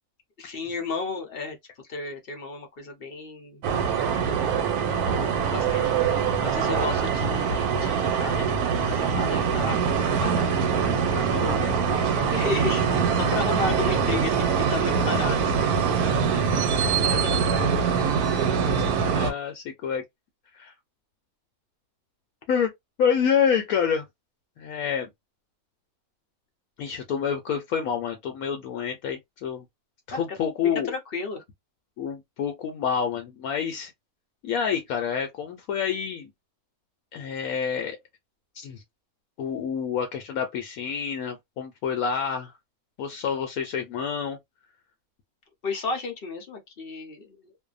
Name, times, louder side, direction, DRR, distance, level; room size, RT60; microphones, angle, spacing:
voice 1, 0.4-1.6 1.9-3.6 4.5-5.9 6.4-9.8 10.1-12.9 13.1-15.6 16.3-17.8 30.1-30.2 30.8-31.4 45.6-47.6, left 3 dB, 50° left, 0.7 m, -34 dB
sound 1, 3.6-19.3, right 6 dB, 85° right, 1.2 m, -24 dB
voice 2, 19.1-20.0 20.5-20.7 22.5-22.7 23.0-24.1 24.6-25.1 26.8-29.6 30.1-30.9 32.0-33.9 34.4-36.3 37.1-38.0 38.5-38.8 39.4-42.5 43.0-44.4, left 7 dB, 75° left, 1.0 m, -28 dB
2.6 x 2.2 x 2.3 m
omnidirectional pair, 1.6 m